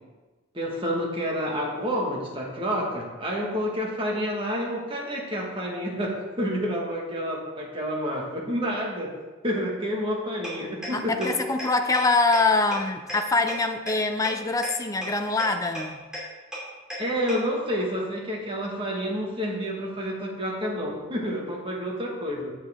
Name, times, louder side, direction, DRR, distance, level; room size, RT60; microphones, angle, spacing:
voice 1, 0.5-9.1 9.4-11.3 17.0-22.5, equal, 25° right, -2 dB, 1.7 m, -29 dB
sound 1, 10.4-10.5 10.8-10.9 11.2-11.3 11.6-11.7 11.9-12.0 12.3-12.4 12.7-12.8 13.1-13.2 13.5-13.6 13.9-14.0 14.2-14.3 14.6-14.7 15.0-15.1 15.4-15.5 15.7-15.8 16.1-16.2 16.5-16.6 16.9-17.0 17.3-17.4, equal, 5° right, 3.0 m, -34 dB
voice 2, 10.9-16.0, left 3 dB, 15° left, 7 dB, 0.4 m, -24 dB
8.4 x 7.8 x 3.7 m, 1.2 s
head